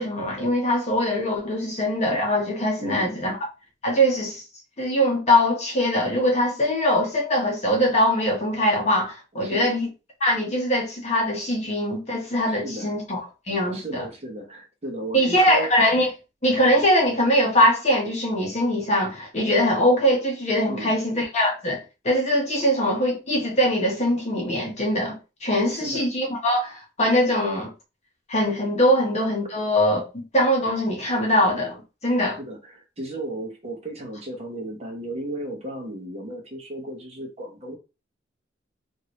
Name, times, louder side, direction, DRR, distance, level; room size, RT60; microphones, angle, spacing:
voice 1, 0.0-3.4 3.8-4.4 4.8-9.9 10.2-13.2 13.5-14.0 15.1-16.1 16.4-21.8 22.0-27.7 28.3-30.0 30.3-32.4, equal, 35° left, 1.0 m, -22 dB
voice 2, 2.8-3.2 9.4-9.7 12.5-12.9 13.7-15.7 20.7-21.0 25.7-26.1 32.3-37.8, right 1 dB, 35° right, 0.8 m, -35 dB
3.0 x 2.6 x 3.0 m
head